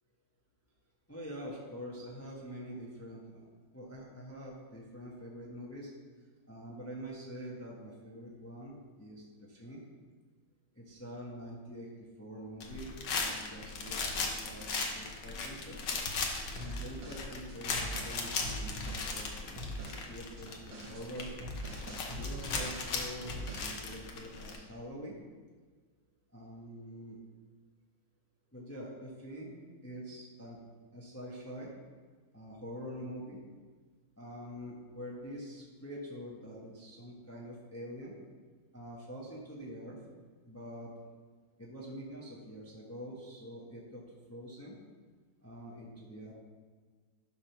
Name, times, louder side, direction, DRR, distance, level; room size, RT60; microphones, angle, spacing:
voice 1, 1.1-5.9 6.5-9.8 10.7-11.9 12.2-15.8 16.5-20.6 20.8-21.3 21.9-25.2 26.3-27.2 28.5-29.5 29.8-30.6 30.9-31.7 32.3-33.4 34.2-38.1 38.7-40.0 40.5-40.9 41.6-44.0 44.3-44.8 45.4-46.3, equal, 10° left, -4 dB, 0.9 m, -45 dB
sound 1, 12.6-24.6, left 4 dB, 65° left, 1.6 m, -38 dB
sound 2, 16.6-19.1 19.6-20.1 20.4-22.9 23.2-23.8, equal, 70° right, 2.6 m, -42 dB
11.0 x 3.7 x 5.9 m, 1.5 s
omnidirectional pair, 2.2 m